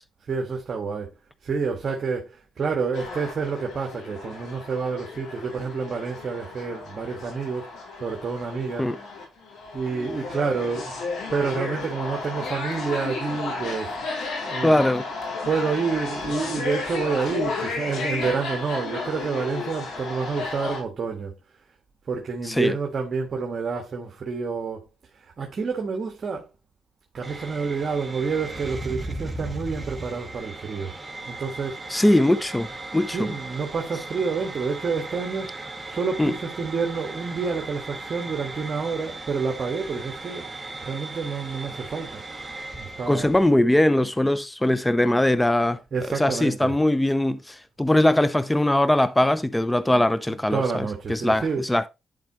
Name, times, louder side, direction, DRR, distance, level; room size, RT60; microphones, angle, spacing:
voice 1, 0.3-1.1 1.4-7.7 8.0-8.9 9.7-10.9 11.3-13.9 14.4-14.9 15.4-21.3 22.1-24.8 25.2-26.5 27.1-30.9 31.3-31.8 33.1-35.6 35.9-42.2 42.8-43.3 45.9-46.7 49.9-50.0 50.5-51.6, right 5 dB, 50° right, 1.6 m, -28 dB
sound 1, 2.9-20.8, left 3 dB, 85° left, 4.0 m, -33 dB
voice 2, 14.6-15.0 22.4-22.7 31.9-32.7 32.9-33.3 36.2-36.3 43.1-45.8 46.2-51.9, left 1 dB, 10° left, 0.6 m, -21 dB
sound 2, 27.2-43.5, right 2 dB, 15° right, 2.0 m, -37 dB
10.5 x 4.8 x 3.1 m
cardioid pair, 95°, 0 cm